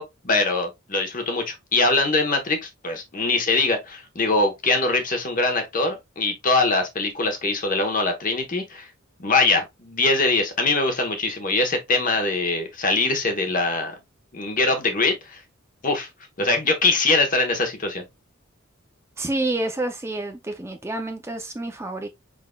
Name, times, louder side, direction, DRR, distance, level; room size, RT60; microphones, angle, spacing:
voice 1, 0.0-8.9 9.2-13.9 14.3-15.4 15.8-16.1 16.4-18.0, left 3 dB, 40° left, 1.0 m, -22 dB
voice 2, 19.2-22.1, right 2 dB, 15° right, 0.4 m, -28 dB
5.0 x 3.7 x 2.2 m
head